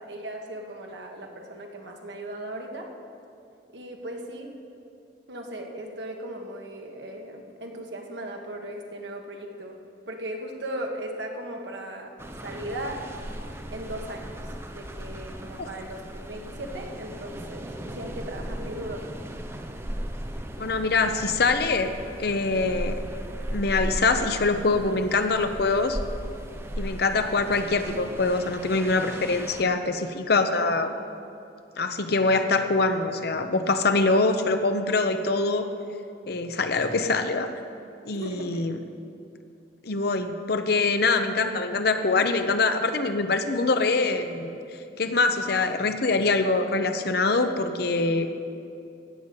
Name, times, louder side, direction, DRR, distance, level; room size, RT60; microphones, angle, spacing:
voice 1, 0.0-2.9 3.7-4.6 5.3-9.8 10.1-12.1 12.4-13.0 13.7-14.5 14.7-19.2 38.1-38.6, right 1 dB, 80° right, 2 dB, 1.5 m, -37 dB
sound 1, 12.2-29.6, right 1 dB, 15° right, 0.6 m, -37 dB
voice 2, 20.6-23.0 23.5-26.0 26.8-30.9 31.8-35.7 36.3-37.5 38.1-38.8 39.8-44.6 45.0-48.3, left 3 dB, 60° left, 8 dB, 0.8 m, -24 dB
16.0 x 5.5 x 8.2 m, 2.5 s
head